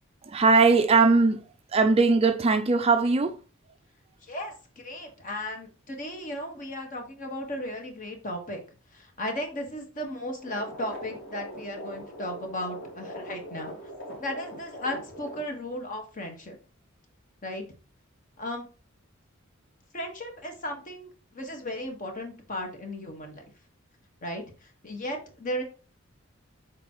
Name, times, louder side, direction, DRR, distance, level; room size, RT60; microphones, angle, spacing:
voice 1, 0.2-1.4 1.7-3.4, right 4 dB, 30° right, 0.4 m, -20 dB
voice 2, 4.8-8.6 8.9-13.7 14.2-16.5 17.4-17.6 18.4-18.6 19.9-23.4 24.2-25.6, left 1 dB, 40° left, 1.5 m, -35 dB
sound 1, 10.4-15.4, equal, 65° left, 3.0 m, -41 dB
7.1 x 4.6 x 3.0 m
head